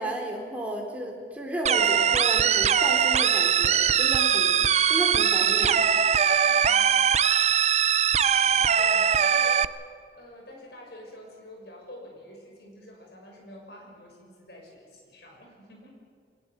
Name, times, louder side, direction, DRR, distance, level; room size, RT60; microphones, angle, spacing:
voice 1, 0.0-5.9, right 1 dB, 10° right, -1 dB, 3.7 m, -33 dB
sound 1, 1.7-9.7, right 8 dB, 35° right, 0.5 m, -21 dB
voice 2, 6.5-7.0 7.9-9.9 10.1-16.0, left 1 dB, 60° left, 1 dB, 6.5 m, -48 dB
22.0 x 19.5 x 8.2 m, 2.4 s
head